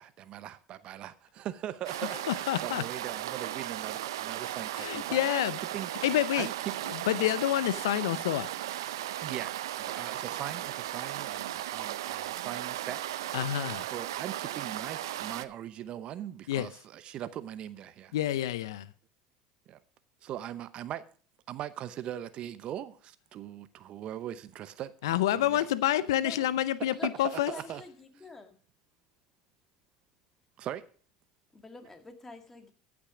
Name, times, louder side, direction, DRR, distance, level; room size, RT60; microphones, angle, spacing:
voice 1, 0.0-5.4 5.7-5.9 6.3-6.7 9.2-13.2 13.8-18.1 19.7-19.8 20.2-21.0 21.5-24.9 25.3-25.7 27.0-27.8 30.6-30.8, right 11 dB, 50° right, 0.8 m, -40 dB
sound 1, 1.9-15.5, right 13 dB, 85° right, 0.5 m, -36 dB
voice 2, 2.3-2.8 4.8-5.6 6.0-6.5 6.9-8.5 13.3-13.8 16.5-16.7 18.1-18.9 25.0-27.5, left 13 dB, 85° left, 0.5 m, -28 dB
voice 3, 26.1-26.4 26.8-28.6 31.5-32.7, left 2 dB, 15° left, 1.9 m, -48 dB
14.0 x 6.1 x 5.0 m
hypercardioid pair, 90°, 2 cm